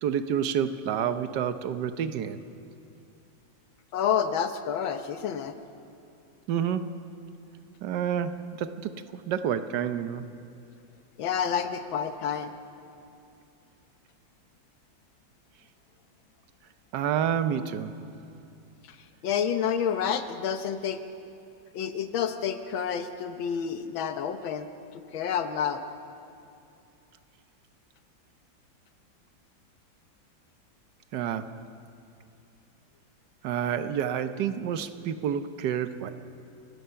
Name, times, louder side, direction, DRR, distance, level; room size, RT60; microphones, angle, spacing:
voice 1, 0.0-2.4 6.5-7.0 7.8-10.3 16.9-18.0 31.1-31.6 33.4-36.1, right 8 dB, 65° right, 10 dB, 1.4 m, -29 dB
voice 2, 3.9-5.6 11.2-12.5 18.9-19.0 19.2-21.0 21.7-25.8, left 8 dB, 80° left, 9 dB, 1.7 m, -29 dB
29.5 x 16.5 x 5.7 m, 2.6 s
omnidirectional pair, 2.2 m